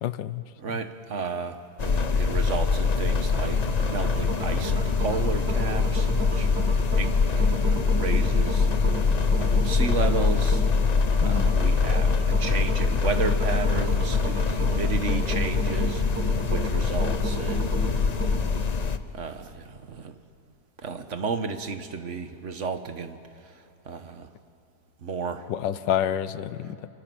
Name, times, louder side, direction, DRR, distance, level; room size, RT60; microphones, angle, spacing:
voice 1, 0.0-0.4 11.0-11.5 25.5-26.9, left 10 dB, 90° left, 14 dB, 1.5 m, -28 dB
voice 2, 0.6-6.5 7.0-8.7 9.3-10.6 11.2-17.8 19.1-20.2 20.8-23.2 23.9-24.3 25.0-25.5, right 5 dB, 45° right, 9 dB, 1.5 m, -33 dB
sound 1, 1.8-19.0, left 5 dB, 45° left, 0.5 m, -24 dB
sound 2, 3.3-18.7, right 2 dB, 65° right, 2.4 m, -34 dB
28.5 x 25.0 x 7.9 m, 2.8 s
omnidirectional pair, 1.9 m